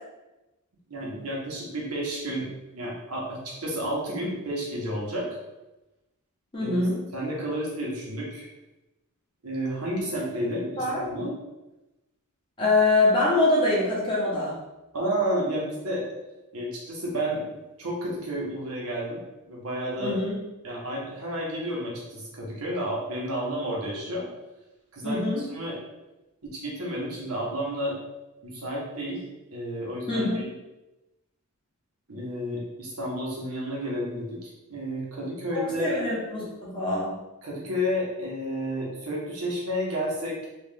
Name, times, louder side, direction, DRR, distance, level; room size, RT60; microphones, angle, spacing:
voice 1, 0.9-5.3 6.6-6.8 7.1-8.5 9.4-11.3 14.9-16.0 16.5-17.4 17.8-20.2 20.6-24.3 24.9-25.8 26.4-28.0 28.4-29.2 29.5-30.5 32.1-35.9 37.4-40.5, equal, 80° right, -4 dB, 1.1 m, -31 dB
voice 2, 6.5-7.0 10.8-11.0 12.6-14.5 20.0-20.3 25.0-25.4 30.1-30.4 35.5-37.2, left 2 dB, 25° left, -7 dB, 1.1 m, -24 dB
3.1 x 2.5 x 3.6 m, 1.0 s
head